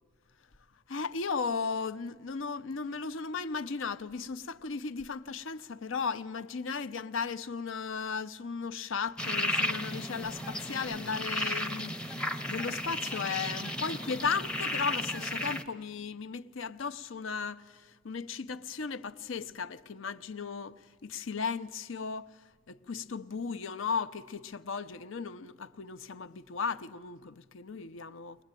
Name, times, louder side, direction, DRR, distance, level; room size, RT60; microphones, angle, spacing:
voice 1, 0.9-22.3 22.7-28.4, left 5 dB, 65° left, 0.6 m, -36 dB
sound 1, 9.2-15.6, left 1 dB, 5° left, 0.7 m, -34 dB
22.0 x 20.5 x 9.0 m
head